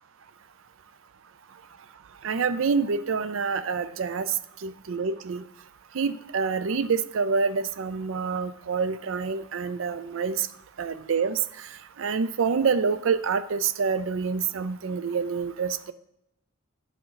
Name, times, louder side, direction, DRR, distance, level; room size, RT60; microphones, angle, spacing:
voice 1, 2.2-4.3 4.6-5.4 5.9-10.5 10.8-11.4 12.0-15.9, right 5 dB, 70° right, 13 dB, 0.5 m, -27 dB
11.0 x 4.5 x 3.9 m, 0.81 s
head